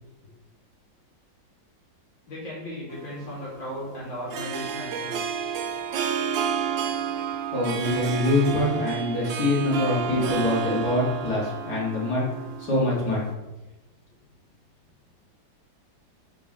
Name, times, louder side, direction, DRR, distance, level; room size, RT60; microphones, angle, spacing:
voice 1, 2.3-5.2, equal, 85° left, -7 dB, 3.6 m, -36 dB
Harp, 2.9-13.3, right 7 dB, 75° right, 1.3 m, -31 dB
voice 2, 7.5-12.2 12.7-13.2, left 1 dB, 55° left, -5 dB, 2.6 m, -24 dB
5.2 x 4.6 x 5.5 m, 1.1 s
omnidirectional pair, 2.1 m